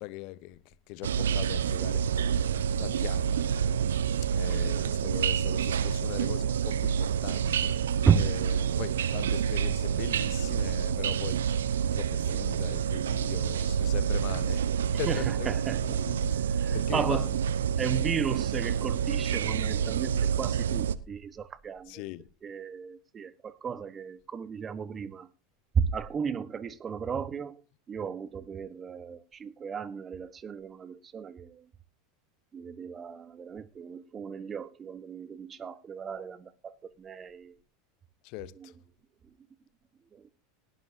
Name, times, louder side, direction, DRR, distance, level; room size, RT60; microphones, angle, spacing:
voice 1, 0.0-3.7 4.3-11.5 11.8-14.7 15.0-15.5 15.8-16.4 16.7-17.3 21.9-22.3 38.2-38.7, left 18 dB, 60° left, 0.7 m, -41 dB
sound 1, 1.0-20.9, right 8 dB, 85° right, 0.7 m, -28 dB
voice 2, 8.0-8.4 14.9-16.0 16.6-17.3 17.8-22.0 22.4-25.3 25.7-27.6 27.9-31.7 32.5-37.5 38.5-38.7 39.2-39.4 40.1-40.3, right 7 dB, 30° right, 1.1 m, -33 dB
18.0 x 12.0 x 2.7 m
hypercardioid pair, 90°, 0 cm